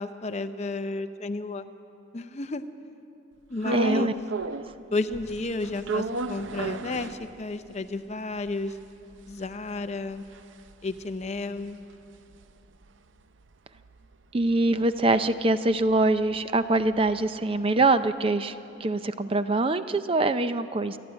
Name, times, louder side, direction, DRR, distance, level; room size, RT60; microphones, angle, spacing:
voice 1, 0.0-1.7 2.1-2.6 3.5-4.1 4.9-8.7 9.3-10.2 10.8-11.8, left 3 dB, 35° left, 10 dB, 0.6 m, -32 dB
sound 1, 3.6-4.8 5.1-7.7 8.1-8.2 8.4-12.9 13.2-17.3, right 3 dB, 70° right, 0.6 m, -35 dB
voice 2, 3.7-4.1 14.3-18.5 18.8-21.0, right 2 dB, 30° right, 11 dB, 0.5 m, -24 dB
28.0 x 11.0 x 8.8 m, 2.8 s
head